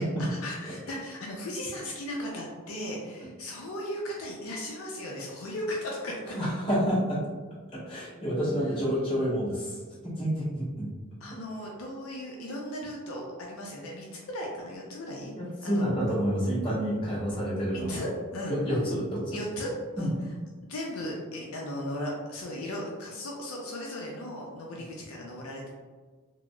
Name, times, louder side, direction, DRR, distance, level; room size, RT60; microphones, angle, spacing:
voice 1, 0.3-6.4 11.2-15.3 15.6-15.9 17.7-18.6 19.3-20.1 20.7-25.7, left 1 dB, 75° left, -2 dB, 0.5 m, -36 dB
voice 2, 6.3-7.2 7.7-10.9 15.3-18.0 18.5-19.4 20.0-20.1, equal, 25° left, -10 dB, 1.2 m, -29 dB
3.7 x 2.0 x 2.2 m, 1.4 s
head